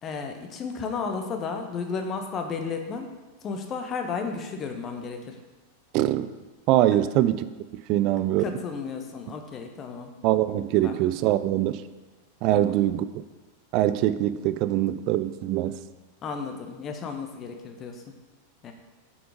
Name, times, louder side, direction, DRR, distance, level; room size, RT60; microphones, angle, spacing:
voice 1, 0.0-3.1 3.4-5.3 6.9-7.0 7.9-8.0 8.4-10.1 10.8-10.9 12.5-12.7 16.2-18.0 18.6-18.7, left 5 dB, 30° left, 5 dB, 1.2 m, -33 dB
voice 2, 5.9-6.3 6.7-7.5 7.9-8.4 10.2-11.8 12.4-13.2 13.7-15.8, right 13 dB, 40° right, 14 dB, 0.4 m, -23 dB
7.2 x 7.0 x 5.2 m, 1.2 s
figure-of-eight pair, 90°, 0 cm